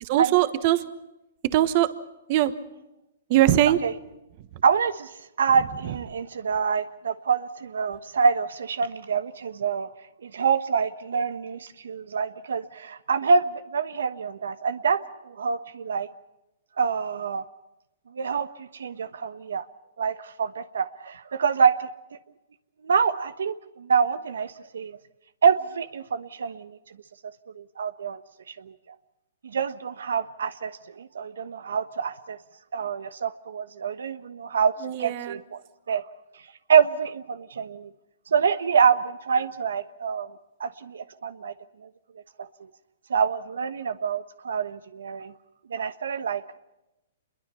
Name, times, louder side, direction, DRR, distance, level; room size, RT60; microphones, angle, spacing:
voice 1, 0.0-0.8 1.5-1.9 2.3-2.5 3.3-3.8 34.8-35.4, right 14 dB, 40° right, 13 dB, 1.3 m, -21 dB
voice 2, 4.6-5.1 5.4-9.9 10.2-16.1 16.8-17.4 18.1-19.6 20.0-21.9 22.8-25.0 25.4-26.8 27.5-28.2 28.5-28.7 29.4-32.4 32.7-34.7 35.0-35.6 35.9-36.0 36.7-37.9 38.3-40.3 40.6-41.5 42.4-42.5 43.1-45.3 45.7-46.4, right 6 dB, 85° right, 12 dB, 1.2 m, -26 dB
26.5 x 22.5 x 5.6 m, 0.95 s
hypercardioid pair, 150°, 0 cm